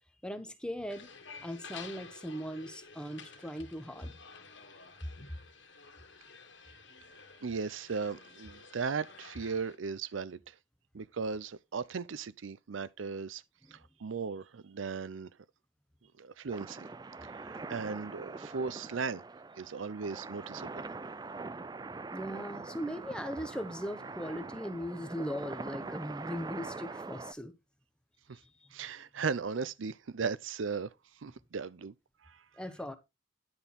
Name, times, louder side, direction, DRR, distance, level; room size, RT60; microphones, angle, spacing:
voice 1, 0.2-1.1 1.4-4.1 13.7-13.8 22.1-27.5 32.6-33.0, equal, 5° left, 1.0 m, -39 dB
sound 1, 0.9-9.8, left 5 dB, 65° left, 1.8 m, -51 dB
voice 2, 7.4-10.5 10.9-13.4 13.7-15.3 16.2-16.9 17.4-19.2 19.6-20.9 28.3-28.4 28.7-30.9 31.2-31.9 32.2-32.4, right 5 dB, 80° right, 0.6 m, -37 dB
sound 2, 16.5-27.3, right 3 dB, 20° right, 0.4 m, -43 dB
10.5 x 5.5 x 4.2 m
head